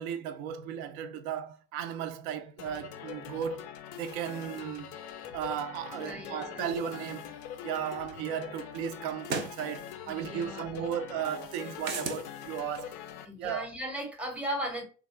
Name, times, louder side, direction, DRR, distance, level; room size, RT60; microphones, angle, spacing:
voice 1, 0.0-3.7 3.9-5.0 5.3-7.3 7.6-13.0 13.4-13.7, right 9 dB, 45° right, 0.5 m, -35 dB
sound 1, 2.6-13.3, left 10 dB, 40° left, 0.4 m, -43 dB
voice 2, 5.9-6.6 10.1-10.9 13.2-14.8, equal, 5° right, 0.8 m, -37 dB
sound 2, 7.9-8.0 9.2-9.6 11.8-12.2, right 4 dB, 90° right, 0.6 m, -33 dB
3.3 x 2.4 x 2.4 m
figure-of-eight pair, 80°, 50 cm